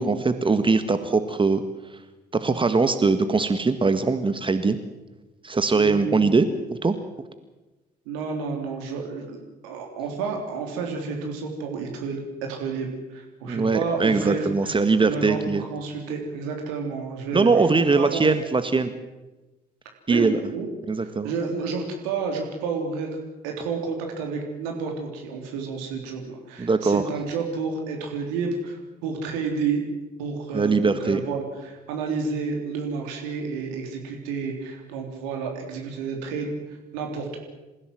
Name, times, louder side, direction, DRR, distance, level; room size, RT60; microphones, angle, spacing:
voice 1, 0.0-1.6 2.3-4.8 5.4-7.0 13.5-15.6 17.3-18.9 20.1-20.4 20.9-21.3 26.6-27.1 30.5-31.2, right 4 dB, 25° right, 9 dB, 1.7 m, -21 dB
voice 2, 5.7-6.2 8.1-9.4 9.6-12.2 12.5-17.5 18.0-18.2 20.1-20.7 21.0-23.1 23.4-29.8 30.2-37.4, right 5 dB, 70° right, 2 dB, 3.5 m, -30 dB
28.0 x 16.0 x 7.7 m, 1.1 s
figure-of-eight pair, 50°, 20 cm